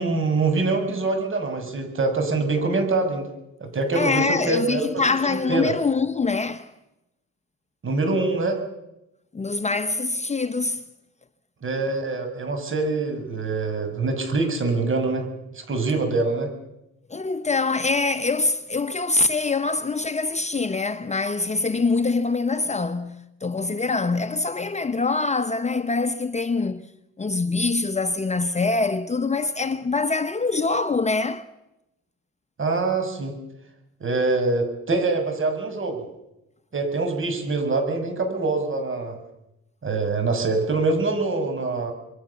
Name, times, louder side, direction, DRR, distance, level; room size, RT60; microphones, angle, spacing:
voice 1, 0.0-3.3 3.6-5.0 5.3-5.7 7.8-8.6 11.6-15.3 15.5-16.5 32.6-33.4 34.0-36.0 36.7-39.2 39.8-41.9, right 3 dB, 40° right, 6.4 m, -24 dB
voice 2, 3.9-6.7 9.3-10.8 17.1-26.9 27.2-31.4, left 3 dB, 20° left, 1.0 m, -24 dB
26.0 x 23.0 x 7.1 m
cardioid pair, 90°, 30 cm